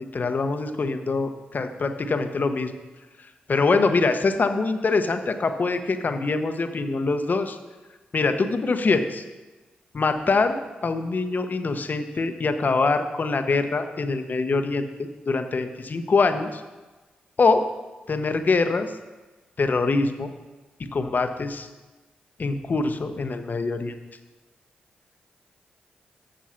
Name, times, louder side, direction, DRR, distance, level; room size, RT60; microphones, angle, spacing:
voice 1, 0.1-2.7 3.5-7.6 8.1-9.2 9.9-10.6 10.8-16.6 17.4-17.6 18.1-18.9 19.6-20.3 20.8-21.7 22.4-23.9, left 3 dB, 50° left, 8 dB, 0.8 m, -24 dB
7.6 x 6.9 x 5.7 m, 1.2 s
supercardioid pair, 40°, 4 cm